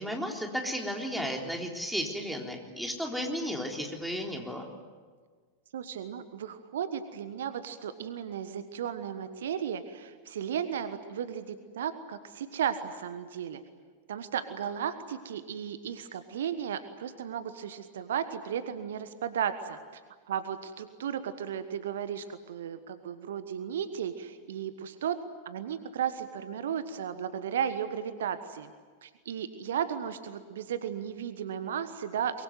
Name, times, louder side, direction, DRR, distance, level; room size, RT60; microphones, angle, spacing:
voice 1, 0.0-4.6, equal, ahead, 1 dB, 3.7 m, -34 dB
voice 2, 5.7-13.6 14.1-20.0 20.3-25.2 25.4-28.7 29.0-32.4, right 8 dB, 60° right, 11 dB, 1.3 m, -35 dB
23.5 x 23.0 x 9.4 m, 1.5 s
figure-of-eight pair, 90°, 0 cm